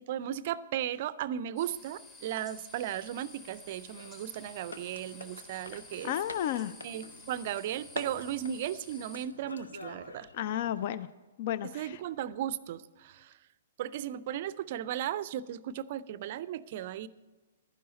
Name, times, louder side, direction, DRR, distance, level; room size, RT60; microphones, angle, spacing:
voice 1, 0.0-6.1 6.8-10.3 11.7-13.4 13.8-17.1, right 11 dB, 45° right, 19 dB, 0.4 m, -36 dB
sound 1, 1.6-9.3, left 3 dB, 25° left, 1.4 m, -52 dB
sound 2, 3.0-10.8, left 3 dB, 75° left, 0.7 m, -48 dB
voice 2, 6.0-6.7 10.3-11.1 11.4-12.0, left 11 dB, 45° left, 16 dB, 0.3 m, -32 dB
12.0 x 10.0 x 4.1 m, 1.3 s
figure-of-eight pair, 115°, 0 cm